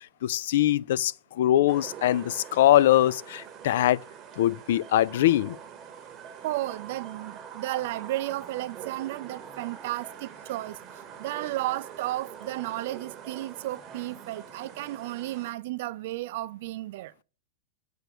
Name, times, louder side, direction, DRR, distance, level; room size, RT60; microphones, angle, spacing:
voice 1, 0.2-1.1 1.4-4.0 4.4-5.6, left 13 dB, 65° left, 0.3 m, -22 dB
sound 1, 1.7-15.5, right 8 dB, 25° right, 1.0 m, -44 dB
voice 2, 6.4-10.8 11.2-17.1, right 16 dB, 60° right, 0.4 m, -33 dB
7.9 x 3.4 x 6.0 m
supercardioid pair, 145°, 0 cm